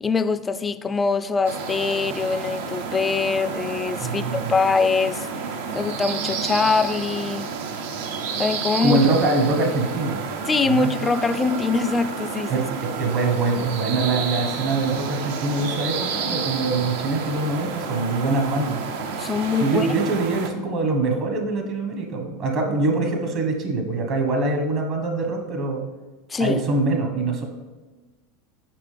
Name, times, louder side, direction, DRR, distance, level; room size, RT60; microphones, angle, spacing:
voice 1, 0.0-5.3 5.7-7.5 8.4-9.0 10.5-12.7 19.2-19.9 26.3-26.6, left 4 dB, 20° left, 12 dB, 0.3 m, -23 dB
sound 1, 1.4-20.5, right 5 dB, 75° right, 0.6 m, -30 dB
voice 2, 4.0-4.5 8.8-10.2 10.6-10.9 12.5-12.6 12.9-18.8 19.6-25.8 26.4-27.5, right 3 dB, 50° right, 3 dB, 1.2 m, -23 dB
6.0 x 5.1 x 3.4 m, 1.3 s
hypercardioid pair, 95°, 0 cm